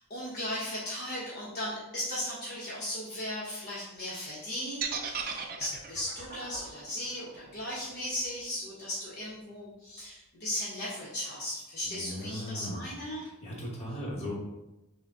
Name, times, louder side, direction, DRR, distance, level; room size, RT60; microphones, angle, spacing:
voice 1, 0.0-13.3, left 1 dB, 45° left, -7 dB, 1.0 m, -37 dB
sound 1, 4.8-8.9, right 6 dB, 40° right, 0.5 m, -38 dB
voice 2, 11.9-12.8 13.2-14.4, equal, 30° left, -5 dB, 1.2 m, -37 dB
6.1 x 2.2 x 3.6 m, 0.98 s
head